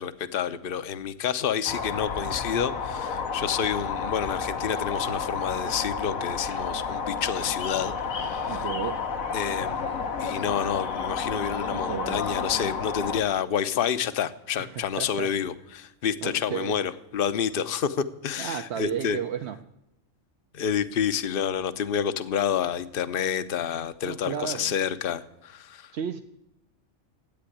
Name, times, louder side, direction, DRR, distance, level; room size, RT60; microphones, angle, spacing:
voice 1, 0.0-8.6 9.3-19.2 20.5-25.9, left 8 dB, 50° left, 13 dB, 0.9 m, -29 dB
sound 1, 1.7-13.2, left 5 dB, 85° left, 1.6 m, -31 dB
voice 2, 8.5-9.0 11.7-12.2 14.6-15.3 16.2-16.8 18.4-19.6 24.0-24.7 25.9-26.2, right 8 dB, 60° right, 5 dB, 0.9 m, -33 dB
14.0 x 8.8 x 9.9 m, 0.90 s
omnidirectional pair, 1.4 m